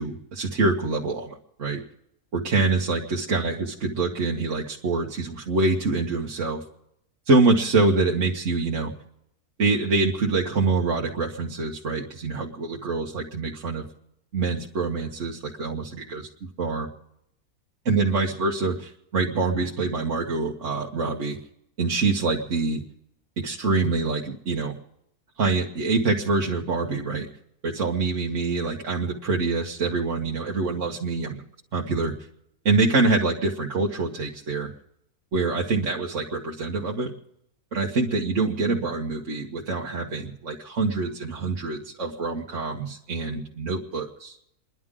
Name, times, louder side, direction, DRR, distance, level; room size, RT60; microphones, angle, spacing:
voice 1, 0.0-1.8 2.3-6.6 7.3-8.9 9.6-13.8 14.3-16.3 16.6-16.9 17.8-21.4 21.8-22.8 23.4-24.8 25.4-27.3 27.6-31.4 31.7-32.1 32.6-34.7 35.3-37.1 37.7-44.4, right 3 dB, 55° right, -2 dB, 1.7 m, -25 dB
29.5 x 11.0 x 3.7 m, 0.80 s
omnidirectional pair, 1.6 m